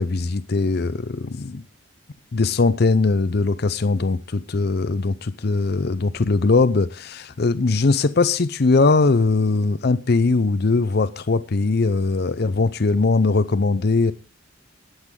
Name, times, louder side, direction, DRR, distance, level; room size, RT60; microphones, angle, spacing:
voice 1, 0.0-1.6 2.3-14.1, left 3 dB, 55° left, 0.6 m, -20 dB
20.0 x 8.0 x 3.7 m
head